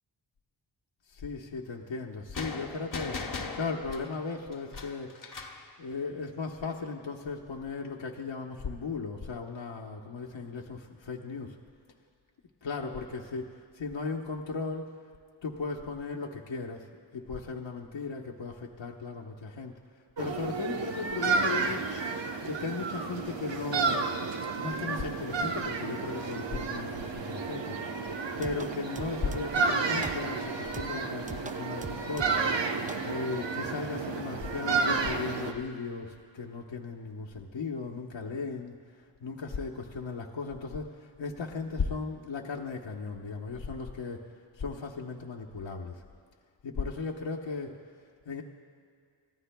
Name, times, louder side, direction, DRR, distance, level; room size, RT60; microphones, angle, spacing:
voice 1, 1.1-5.1 5.8-11.5 12.6-14.9 15.4-16.9 17.1-19.7 20.2-21.9 22.4-24.0 24.6-32.7 33.0-44.2 44.6-46.0 46.6-47.8 48.3-48.4, left 4 dB, 80° left, -1 dB, 1.1 m, -36 dB
sound 1, 2.3-5.7, left 4 dB, 45° left, 1.2 m, -39 dB
sound 2, 20.2-35.5, right 4 dB, 70° right, 1.0 m, -31 dB
sound 3, 28.4-29.7 30.0-30.4 30.7-32.6 32.9-33.1, right 4 dB, 20° right, 0.4 m, -43 dB
29.5 x 14.5 x 2.3 m, 2.3 s
wide cardioid pair, 115°, 45 cm